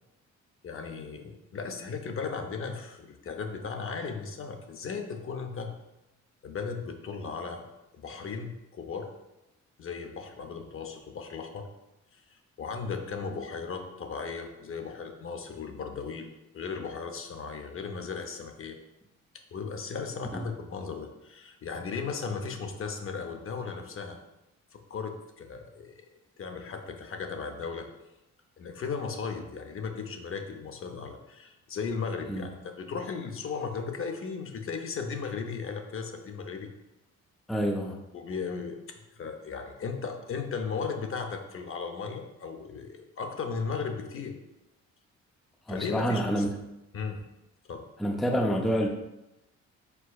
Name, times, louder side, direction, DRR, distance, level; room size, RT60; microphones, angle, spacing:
voice 1, 0.6-5.8 6.4-7.6 8.0-9.1 9.8-11.7 12.1-18.8 19.5-24.2 24.7-26.1 26.4-27.9 28.6-36.7 38.1-38.8 39.1-44.3 45.7-46.4 46.9-47.2 47.7-47.8, left 5 dB, 45° left, 5 dB, 0.6 m, -36 dB
voice 2, 37.5-38.0 45.7-46.5 48.0-48.9, equal, ahead, 1 dB, 0.4 m, -27 dB
4.5 x 4.3 x 2.3 m, 0.94 s
cardioid pair, 90°, 30 cm